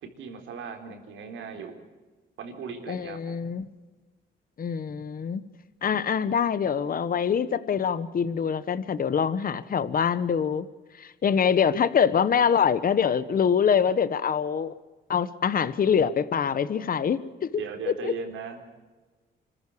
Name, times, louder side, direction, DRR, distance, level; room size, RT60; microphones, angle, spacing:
voice 1, 0.0-1.8 2.4-3.4 17.5-18.7, right 6 dB, 80° right, 5 dB, 4.0 m, -38 dB
voice 2, 2.9-3.6 4.6-5.4 5.8-10.7 11.0-14.7 15.1-17.5 18.0-18.1, left 7 dB, 45° left, 15 dB, 1.2 m, -24 dB
25.5 x 14.5 x 8.6 m, 1.3 s
cardioid pair, 90°, 20 cm